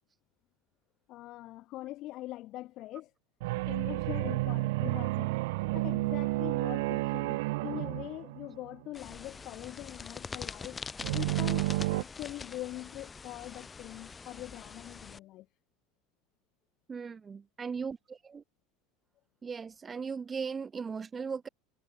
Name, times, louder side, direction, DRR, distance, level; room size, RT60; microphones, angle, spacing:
voice 1, 1.1-3.1 3.7-5.3 5.7-10.8 11.1-15.5, left 16 dB, 40° left, 0.6 m, -43 dB
sound 1, 3.4-8.9 11.0-12.0, right 22 dB, 75° right, 0.9 m, -31 dB
sound 2, 8.9-15.2, left 5 dB, 15° left, 1.9 m, -44 dB
voice 2, 16.9-18.4 19.4-21.5, right 5 dB, 15° right, 0.4 m, -38 dB
cardioid pair, 165°, 0 cm